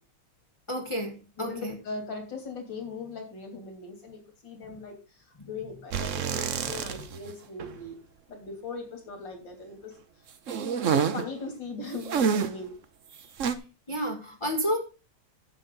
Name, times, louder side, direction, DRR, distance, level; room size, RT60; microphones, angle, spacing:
voice 1, 0.7-1.8 4.7-4.8 13.1-13.3 13.9-14.8, equal, 20° left, 1.1 m, -31 dB
voice 2, 1.4-5.0 5.4-8.0 8.3-9.9 10.9-12.7, left 3 dB, 70° left, 3.7 m, -39 dB
sound 1, 5.9-7.3 7.6-7.7 10.5-11.3 12.0-12.6 13.4-13.5, right 7 dB, 50° right, 1.0 m, -27 dB
11.5 x 7.5 x 3.9 m
omnidirectional pair, 2.0 m